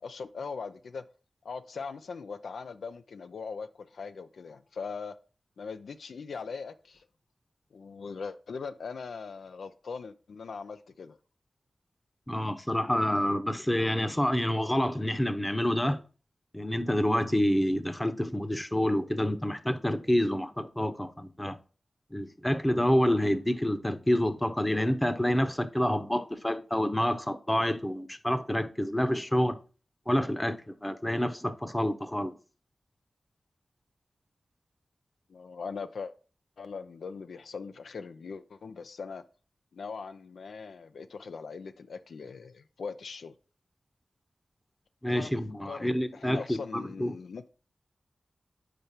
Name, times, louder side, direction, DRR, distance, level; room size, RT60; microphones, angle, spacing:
voice 1, 0.0-1.0 1.4-5.1 5.6-7.1 7.7-11.2 35.3-36.1 36.6-39.2 39.7-43.3 45.1-45.3 45.6-47.5, left 5 dB, 90° left, 0.3 m, -40 dB
voice 2, 12.3-16.0 16.5-21.6 22.1-29.6 30.1-32.4 45.0-46.4 46.7-47.1, left 1 dB, 15° left, 0.7 m, -28 dB
5.1 x 4.5 x 4.1 m
cardioid pair, 45°, 0 cm